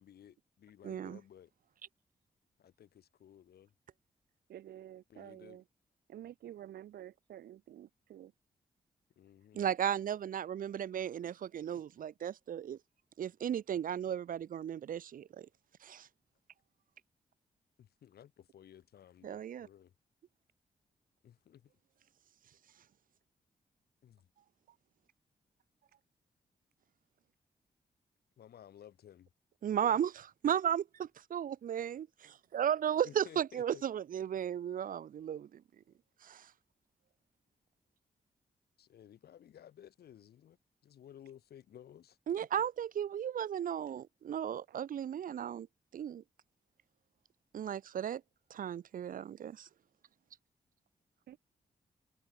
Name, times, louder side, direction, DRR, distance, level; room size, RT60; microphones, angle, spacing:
voice 1, 0.0-1.5 2.6-3.7 5.1-5.6 9.2-9.7 17.8-19.9 21.2-21.7 24.0-24.3 28.4-29.3 29.8-30.0 33.0-33.8 38.8-40.6 40.8-42.2 42.5-42.7, left 10 dB, 80° left, 2.4 m, -56 dB
voice 2, 0.8-1.2 9.5-12.8 13.2-15.5 15.8-16.1 19.2-19.7 29.6-35.6 36.2-36.5 42.3-45.7 45.9-46.2 47.5-48.2 48.5-49.7, right 9 dB, 60° right, 0.5 m, -35 dB
voice 3, 4.5-5.6 6.1-8.3 24.7-24.8 44.7-44.8 51.3-51.4, right 12 dB, 80° right, 0.9 m, -50 dB
supercardioid pair, 40°, 16 cm